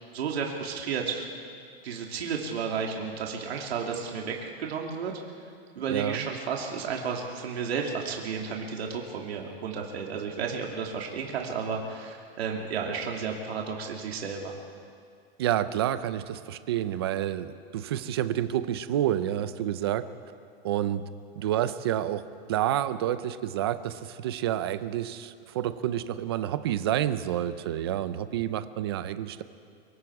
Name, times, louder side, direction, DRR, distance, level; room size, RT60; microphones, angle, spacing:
voice 1, 0.1-1.3 1.8-5.1 5.7-14.5, right 6 dB, 90° right, 0 dB, 2.9 m, -32 dB
voice 2, 5.9-6.2 15.4-20.1 20.6-21.0 21.4-22.2 22.5-29.4, right 11 dB, 25° right, 13 dB, 0.5 m, -29 dB
25.0 x 22.5 x 4.8 m, 2.3 s
supercardioid pair, 180°, 31 cm